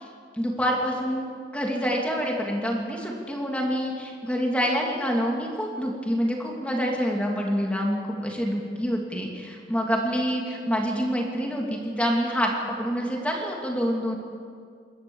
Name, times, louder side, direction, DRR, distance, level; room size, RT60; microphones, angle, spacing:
voice 1, 0.4-12.5 12.8-14.2, equal, 5° left, -1 dB, 2.9 m, -27 dB
27.5 x 13.5 x 7.3 m, 2.2 s
head